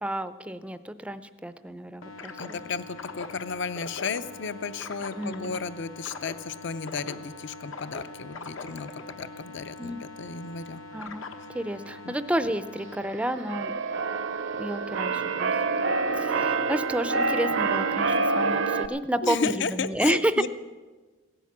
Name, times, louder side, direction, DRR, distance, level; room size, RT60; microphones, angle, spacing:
voice 1, 0.0-2.6 5.2-5.6 9.8-10.0 10.9-11.3 11.5-13.7 14.6-15.5 16.1-20.5, right 1 dB, 5° right, 13 dB, 0.4 m, -30 dB
sound 1, 2.0-13.0, left 3 dB, 80° left, 1.2 m, -42 dB
voice 2, 2.4-10.8 12.0-12.1 18.9-19.0 19.2-20.5, left 5 dB, 60° left, 14 dB, 0.6 m, -33 dB
Keyboard (musical), 13.0-18.9, right 4 dB, 60° right, 0.6 m, -27 dB
16.5 x 10.5 x 7.3 m, 1.3 s
head